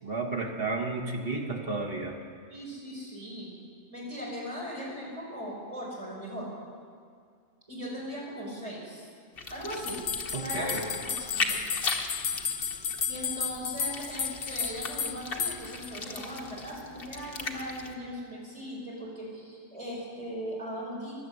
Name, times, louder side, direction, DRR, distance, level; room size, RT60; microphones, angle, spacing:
voice 1, 0.0-2.2 10.3-10.8, right 3 dB, 55° right, 2 dB, 1.9 m, -32 dB
voice 2, 2.5-3.5 3.9-6.5 7.7-9.0 9.5-10.0 10.4-11.6 13.1-21.1, equal, 30° right, -5 dB, 5.1 m, -39 dB
sound 1, 9.3-18.0, left 3 dB, 55° left, 1.4 m, -38 dB
sound 2, 9.9-15.9, left 7 dB, 85° left, 1.0 m, -33 dB
15.5 x 11.0 x 8.0 m, 2.1 s
omnidirectional pair, 1.2 m